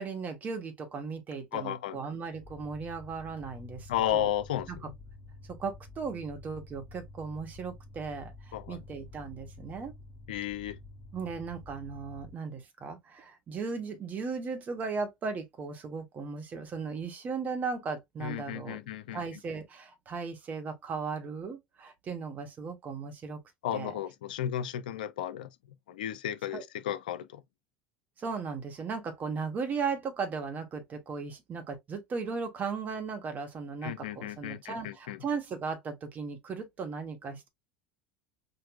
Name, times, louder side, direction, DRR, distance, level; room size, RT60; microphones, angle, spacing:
voice 1, 0.0-4.3 4.7-4.8 5.5-8.3 8.7-9.9 11.1-18.8 19.1-23.4 23.7-24.0 26.5-26.6 28.2-37.5, right 5 dB, 35° right, 1.2 m, -37 dB
voice 2, 1.5-2.0 3.9-4.7 8.5-8.8 10.3-10.8 18.2-19.2 23.6-25.5 25.9-27.4 33.8-35.2, left 11 dB, 75° left, 0.4 m, -33 dB
sound 1, 2.3-12.3, left 2 dB, 45° left, 1.1 m, -49 dB
4.5 x 2.5 x 2.3 m
hypercardioid pair, 80°, 5 cm